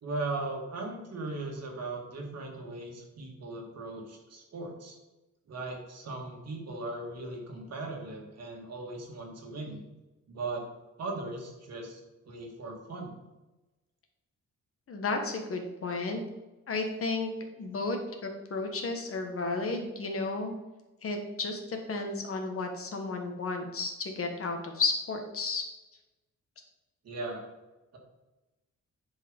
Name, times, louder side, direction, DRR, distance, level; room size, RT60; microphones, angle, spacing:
voice 1, 0.0-4.9 5.5-9.8 10.3-10.6 11.0-13.1 27.0-27.4, right 2 dB, 55° right, 1 dB, 2.2 m, -38 dB
voice 2, 14.9-16.2 16.7-17.3 17.6-20.5 21.0-25.6, left 3 dB, 45° left, 4 dB, 1.4 m, -33 dB
11.0 x 4.8 x 5.3 m, 1.1 s
wide cardioid pair, 170°, 31 cm